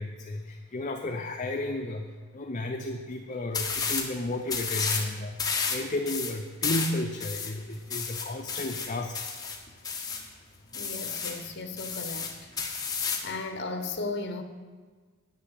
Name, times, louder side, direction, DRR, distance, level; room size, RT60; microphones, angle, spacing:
voice 1, 0.0-2.1 2.3-9.2, left 2 dB, 35° left, 3 dB, 0.6 m, -33 dB
sound 1, 3.5-4.1 4.5-5.1 5.4-10.3 10.7-11.4 11.8-13.3, left 5 dB, 20° left, 1.1 m, -32 dB
voice 2, 10.7-12.4 13.2-14.4, left 3 dB, 55° left, 7 dB, 1.1 m, -35 dB
9.8 x 6.3 x 8.1 m, 1.5 s
head